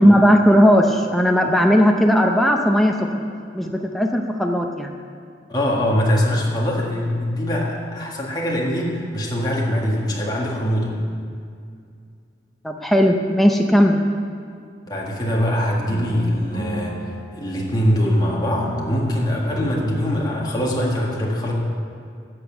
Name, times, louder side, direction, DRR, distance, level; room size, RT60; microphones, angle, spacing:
voice 1, 0.0-3.2 3.5-4.9 12.6-14.0, equal, ahead, 2 dB, 0.6 m, -16 dB
voice 2, 5.5-11.0 14.9-21.5, equal, 25° left, -3 dB, 1.8 m, -22 dB
sound 1, 15.9-18.2 18.6-20.9, right 1 dB, 80° right, 3.4 m, -34 dB
11.5 x 6.9 x 7.1 m, 2.3 s
head